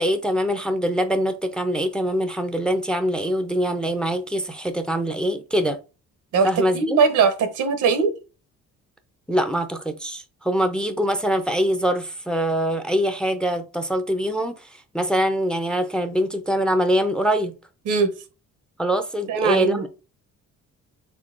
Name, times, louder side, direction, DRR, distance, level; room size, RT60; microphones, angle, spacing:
voice 1, 0.0-5.8 6.4-7.0 9.3-14.7 14.9-17.5 18.8-19.9, equal, 5° left, 0.4 m, -23 dB
voice 2, 6.7-8.1 17.9-18.1 19.3-19.9, right 5 dB, 80° right, 0.9 m, -20 dB
3.7 x 3.6 x 2.4 m
cardioid pair, 90°, 30 cm